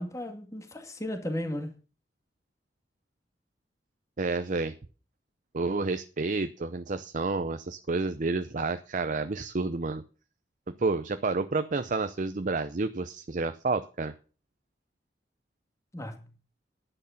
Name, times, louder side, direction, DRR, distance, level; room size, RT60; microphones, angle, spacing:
voice 1, 0.0-1.7 15.9-16.3, left 1 dB, 20° left, 2.2 m, -35 dB
voice 2, 4.2-4.7 5.5-10.0 10.7-14.1, right 3 dB, 45° right, 0.7 m, -30 dB
10.5 x 10.0 x 5.7 m
head